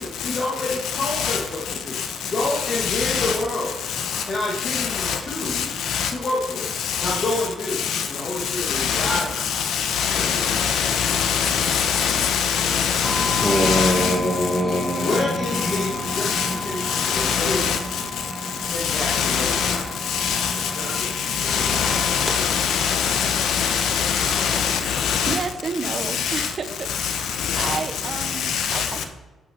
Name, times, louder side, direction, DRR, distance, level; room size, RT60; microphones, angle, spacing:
voice 1, 0.0-3.8 4.3-6.7 7.0-9.6 10.1-10.7 15.0-17.9 18.7-19.6 20.7-22.2, left 2 dB, 45° left, 2.2 m, -29 dB
voice 2, 1.0-1.4 2.7-3.3 4.1-4.2 4.6-5.2 5.5-6.1 6.8-7.2 7.7-8.1 8.6-14.1 16.1-16.5 16.8-17.8 18.8-19.8 20.1-25.4 25.8-26.5 26.9-27.8 28.2-28.9, left 7 dB, 75° left, 1.3 m, -23 dB
sound 1, 13.0-22.4, left 1 dB, 10° left, 2.1 m, -27 dB
voice 3, 25.3-29.0, right 4 dB, 45° right, 0.9 m, -31 dB
11.5 x 6.2 x 4.6 m
cardioid pair, 90°, 0 cm